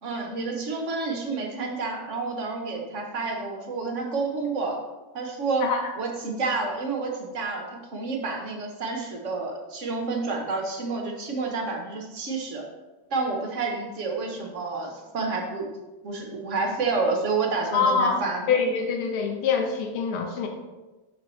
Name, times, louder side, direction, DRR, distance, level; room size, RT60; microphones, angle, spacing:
voice 1, 0.0-4.8 5.1-5.6 6.0-12.6 13.1-15.7 16.0-18.4, right 3 dB, 55° right, 2 dB, 0.9 m, -29 dB
voice 2, 17.7-18.2 18.5-20.5, left 5 dB, 85° left, 3 dB, 1.6 m, -24 dB
7.1 x 6.1 x 3.0 m, 1.2 s
omnidirectional pair, 2.2 m